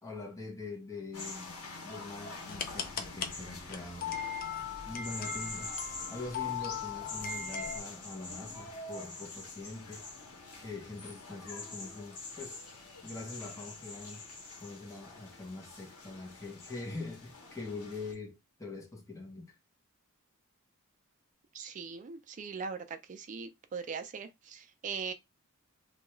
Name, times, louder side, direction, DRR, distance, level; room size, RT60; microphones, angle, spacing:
voice 1, 0.0-1.6 1.8-4.2 4.9-10.1 10.6-12.7 13.0-14.3 14.6-19.6, left 3 dB, 15° left, 0.7 m, -44 dB
sound 1, 1.1-18.1, left 3 dB, 90° left, 0.9 m, -45 dB
sound 2, 2.5-7.8, left 7 dB, 40° left, 0.3 m, -39 dB
voice 2, 21.5-25.1, right 5 dB, 35° right, 0.3 m, -40 dB
2.3 x 2.3 x 3.0 m
head